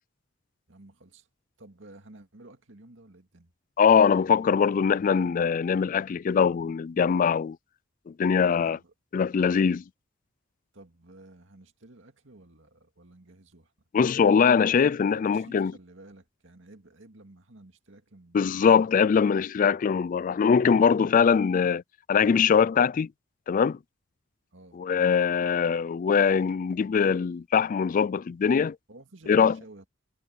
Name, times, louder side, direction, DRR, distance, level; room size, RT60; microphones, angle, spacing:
voice 1, 0.7-1.3 1.6-3.5 8.6-8.9 10.7-13.7 15.1-18.9 24.5-24.8 28.9-29.9, right 2 dB, 70° right, 2.3 m, -52 dB
voice 2, 3.8-7.6 8.1-8.8 9.1-9.8 13.9-15.7 18.3-21.8 22.1-23.1 23.5-23.8 24.8-28.8 29.3-29.6, left 6 dB, 40° left, 0.3 m, -22 dB
head